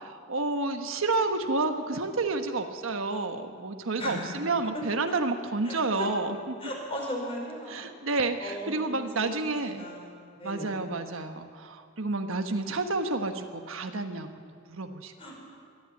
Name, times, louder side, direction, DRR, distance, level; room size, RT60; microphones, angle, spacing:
voice 1, 0.0-6.6 7.7-9.8 10.4-14.3 14.7-15.1, right 3 dB, 75° right, 6 dB, 1.3 m, -30 dB
voice 2, 5.7-6.1 6.6-7.8 8.4-9.4 9.8-10.8 15.2-15.3, equal, 30° left, -1 dB, 5.3 m, -37 dB
22.5 x 13.5 x 8.6 m, 2.2 s
head